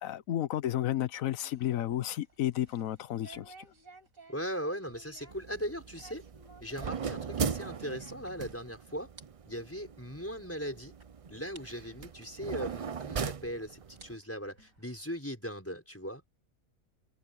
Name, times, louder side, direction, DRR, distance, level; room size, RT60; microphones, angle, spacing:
voice 1, 0.0-3.5, left 12 dB, 80° left, 1.2 m, -32 dB
sound 1, 0.7-8.7 8.9-9.2 9.6-9.7 10.4-10.5 11.0-11.1 11.5-11.6 13.0-13.1 13.8-15.2, right 3 dB, 80° right, 5.5 m, -57 dB
voice 2, 4.3-6.2 6.6-9.1 9.5-10.9 11.3-16.3, equal, 10° left, 5.7 m, -39 dB
sound 2, 5.3-14.2, right 6 dB, 55° right, 0.4 m, -39 dB
omnidirectional pair, 1.4 m